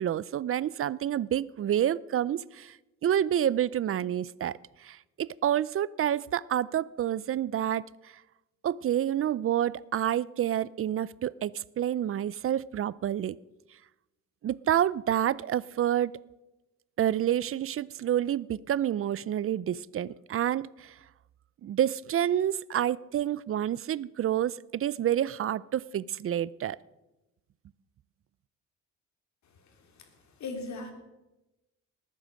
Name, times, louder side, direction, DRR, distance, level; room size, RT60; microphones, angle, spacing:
voice 1, 0.0-2.8 3.0-7.9 8.6-13.4 14.4-16.1 17.0-20.9 21.6-26.8, right 10 dB, 45° right, 22 dB, 0.5 m, -28 dB
voice 2, 29.4-30.9, left 3 dB, 65° left, 4 dB, 3.5 m, -41 dB
19.5 x 9.3 x 6.3 m, 1.0 s
cardioid pair, 90°, 30 cm